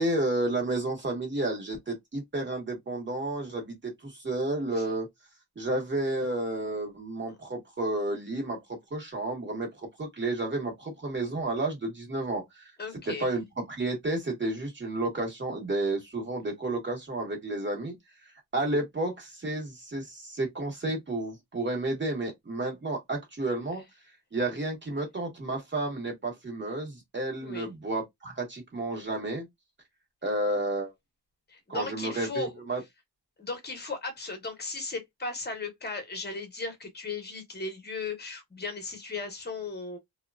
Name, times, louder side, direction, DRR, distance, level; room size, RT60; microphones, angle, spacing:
voice 1, 0.0-5.1 5.6-12.7 13.1-18.0 18.5-23.8 24.3-29.5 30.2-30.9 31.7-32.8, right 2 dB, 25° right, 1.1 m, -31 dB
voice 2, 12.8-13.3 27.4-27.7 31.5-32.5 33.4-40.0, left 3 dB, 25° left, 0.9 m, -36 dB
2.9 x 2.2 x 2.3 m
wide cardioid pair, 150°, 44 cm